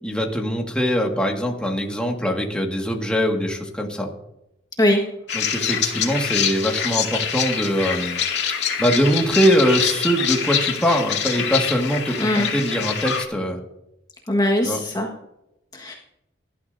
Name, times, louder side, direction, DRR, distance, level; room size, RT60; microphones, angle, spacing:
voice 1, 0.0-4.1 5.3-8.2 8.8-13.6 14.6-14.8, equal, 5° left, 1 dB, 1.8 m, -22 dB
sound 1, 5.3-13.3, left 8 dB, 75° left, 2.2 m, -25 dB
voice 2, 12.2-12.5 14.3-15.1 15.7-15.9, left 1 dB, 20° left, 0 dB, 1.5 m, -20 dB
18.5 x 12.5 x 2.7 m, 0.86 s
head